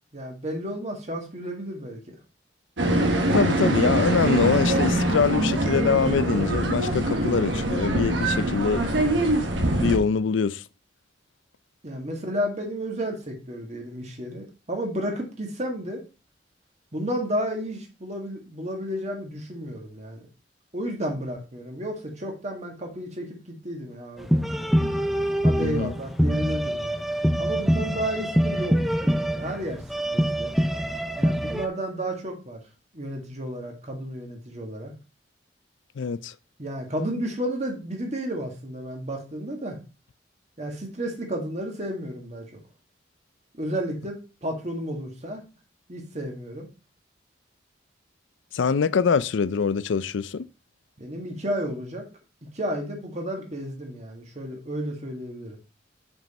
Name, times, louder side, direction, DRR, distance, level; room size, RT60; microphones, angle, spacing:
voice 1, 0.1-2.1 11.8-16.0 16.9-20.3 20.7-24.4 25.4-27.0 27.4-29.8 30.1-30.5 31.2-32.6 32.9-34.9 36.6-39.8 40.6-42.4 43.5-45.4 45.9-46.7 51.0-52.0 52.5-55.6, equal, 40° right, 1.8 m, -32 dB
sound 1, 2.8-10.0, right 1 dB, 85° right, 1.3 m, -23 dB
voice 2, 3.3-8.8 9.7-10.6 25.6-25.9 36.0-36.3 48.5-50.4, left 5 dB, 90° left, 0.4 m, -24 dB
sound 2, 24.2-31.7, equal, ahead, 0.4 m, -24 dB
6.2 x 5.3 x 4.2 m
head